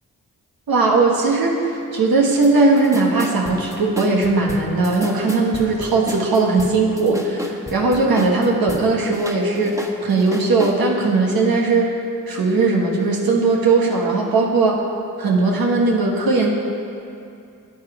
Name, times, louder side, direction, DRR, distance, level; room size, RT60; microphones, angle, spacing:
voice 1, 0.7-11.9 12.3-14.8 15.2-16.5, right 3 dB, 90° right, -1 dB, 1.3 m, -18 dB
sound 1, 2.4-2.5 2.8-8.8 9.1-10.8, equal, 10° right, 1.3 m, -31 dB
13.5 x 8.9 x 4.8 m, 2.6 s
cardioid pair, 55°, 35 cm